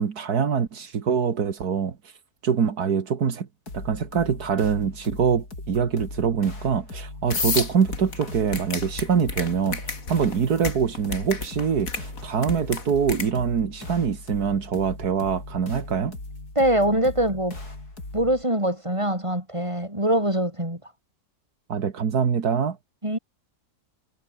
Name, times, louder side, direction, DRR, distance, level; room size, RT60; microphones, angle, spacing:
voice 1, 0.0-2.0 2.4-3.5 3.7-16.1 21.7-22.8, right 6 dB, 80° right, 2.2 m, -24 dB
sound 1, 3.7-18.4, left 2 dB, 85° left, 6.8 m, -39 dB
sound 2, 7.3-13.3, left 4 dB, 60° left, 3.2 m, -31 dB
voice 2, 16.6-17.6 18.1-20.8 23.0-23.2, right 1 dB, 20° right, 7.6 m, -23 dB
omnidirectional pair, 1.6 m